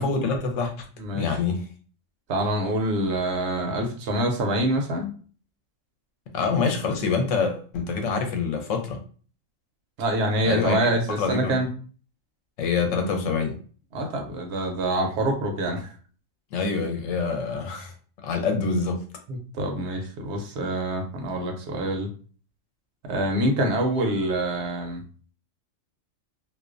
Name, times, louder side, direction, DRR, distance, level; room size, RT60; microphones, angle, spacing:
voice 1, 0.0-0.9 1.1-1.6 6.3-9.0 10.4-10.8 11.2-11.6 12.6-13.6 16.5-17.9 18.2-19.0, left 4 dB, 75° left, 4 dB, 0.9 m, -26 dB
voice 2, 1.0-1.4 2.3-5.1 10.0-11.7 13.9-15.9 19.3-22.1 23.1-25.0, right 1 dB, 65° right, 3 dB, 0.8 m, -26 dB
2.4 x 2.1 x 2.4 m, 0.41 s
omnidirectional pair, 1.3 m